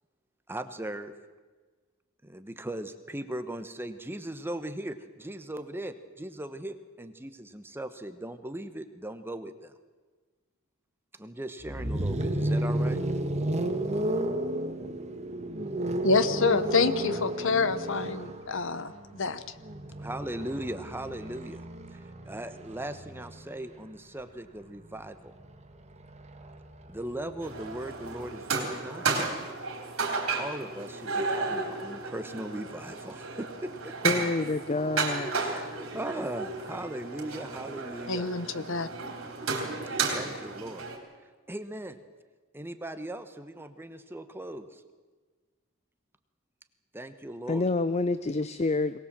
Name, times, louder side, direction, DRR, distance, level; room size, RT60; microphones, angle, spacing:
voice 1, 0.5-1.1 2.2-9.7 11.1-13.0 20.0-21.6 21.9-25.3 26.9-29.2 30.4-33.9 35.4-38.3 38.6-38.7 40.1-40.9 41.5-42.0 42.5-44.8 46.9-47.6, right 1 dB, 10° right, 9 dB, 1.1 m, -38 dB
sound 1, 11.6-23.6 24.8-28.4, right 1 dB, 30° right, 1.5 m, -33 dB
voice 2, 16.0-19.4 38.1-38.9, left 4 dB, 65° left, 13 dB, 1.0 m, -27 dB
sound 2, 27.4-41.0, right 4 dB, 70° right, 3.9 m, -33 dB
voice 3, 34.0-35.3 47.5-49.0, left 3 dB, 30° left, 13 dB, 0.6 m, -27 dB
22.0 x 19.0 x 7.5 m, 1.4 s
head